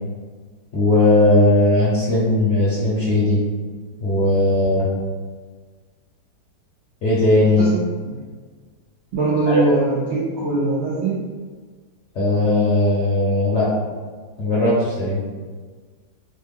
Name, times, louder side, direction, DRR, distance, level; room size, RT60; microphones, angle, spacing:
voice 1, 0.7-3.4 4.0-4.9 7.0-7.7 9.5-9.6 12.1-13.7 14.4-15.2, left 2 dB, 60° left, -8 dB, 0.8 m, -17 dB
voice 2, 7.6-8.2 9.1-11.2, right 2 dB, 90° right, -6 dB, 0.6 m, -22 dB
3.2 x 2.1 x 3.4 m, 1.5 s
omnidirectional pair, 1.8 m